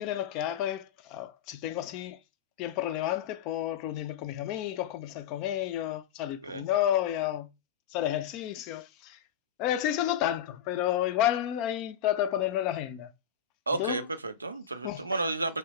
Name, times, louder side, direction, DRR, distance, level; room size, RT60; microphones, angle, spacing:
voice 1, 0.0-2.2 2.6-7.5 7.9-9.2 9.6-13.1 13.8-14.1 14.8-15.0, left 12 dB, 40° left, 0.4 m, -30 dB
voice 2, 13.7-15.6, right 3 dB, 80° right, 0.3 m, -32 dB
3.0 x 2.0 x 2.9 m
figure-of-eight pair, 90°, 0 cm